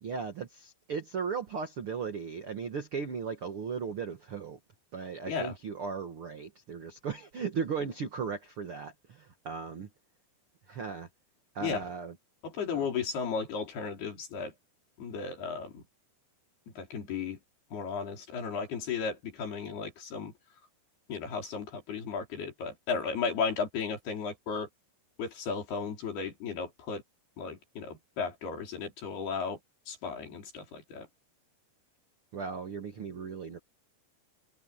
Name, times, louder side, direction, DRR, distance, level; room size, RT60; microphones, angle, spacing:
voice 1, 0.0-4.6 4.9-9.9 10.7-11.1 11.5-12.1 12.7-12.9 32.3-33.6, right 6 dB, 70° right, 1.3 m, -37 dB
voice 2, 12.4-14.5 15.0-15.8 16.8-17.4 17.7-20.3 21.1-24.7 25.2-27.0 27.4-29.6 29.9-31.1, left 5 dB, 60° left, 6.5 m, -35 dB
omnidirectional pair, 5.1 m